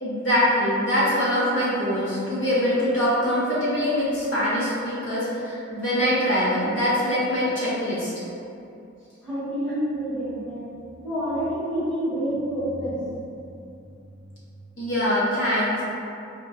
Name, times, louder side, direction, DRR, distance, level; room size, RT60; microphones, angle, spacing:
voice 1, 0.0-8.1 14.8-15.8, equal, 70° left, -9 dB, 1.0 m, -23 dB
voice 2, 9.2-10.7 11.0-14.1, equal, 5° left, -12 dB, 0.9 m, -29 dB
4.2 x 2.2 x 2.7 m, 2.6 s
head